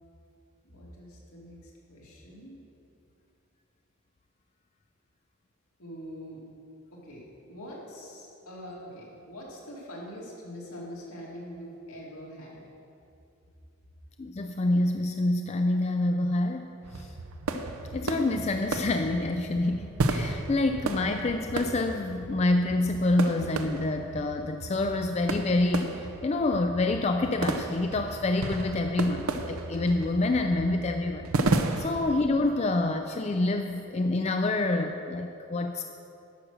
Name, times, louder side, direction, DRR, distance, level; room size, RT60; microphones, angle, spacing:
voice 1, 0.6-2.6 5.8-6.4 6.9-12.6, equal, 80° left, -4 dB, 2.5 m, -44 dB
voice 2, 14.2-17.1 17.9-31.3 31.8-35.8, left 2 dB, 30° left, 5 dB, 0.3 m, -27 dB
sound 1, 16.8-32.2, right 2 dB, 75° right, 0.6 m, -33 dB
11.0 x 6.2 x 6.5 m, 2.7 s
head